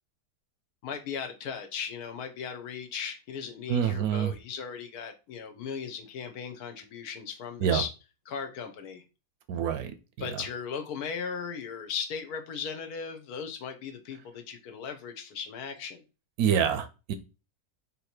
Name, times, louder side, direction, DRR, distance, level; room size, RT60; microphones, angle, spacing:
voice 1, 0.8-7.9 8.3-9.0 10.2-16.0, left 6 dB, 70° left, 1.2 m, -37 dB
voice 2, 3.7-4.3 7.6-7.8 9.5-9.9 10.3-10.4 16.4-17.1, right 8 dB, 70° right, 1.0 m, -26 dB
3.9 x 2.8 x 4.3 m
omnidirectional pair, 1.7 m